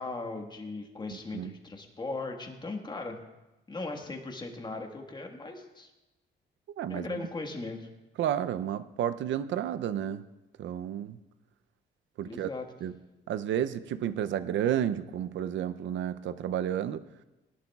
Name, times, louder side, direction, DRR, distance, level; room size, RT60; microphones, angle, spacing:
voice 1, 0.0-3.2 3.7-5.9 6.9-7.9 12.2-12.6, left 3 dB, 20° left, 3 dB, 1.5 m, -38 dB
voice 2, 6.8-7.2 8.2-10.2 10.6-11.2 12.2-12.5 12.8-13.0 13.3-17.0, right 10 dB, 70° right, 13 dB, 0.6 m, -31 dB
18.0 x 11.5 x 2.4 m, 1.0 s
cardioid pair, 90°, 20 cm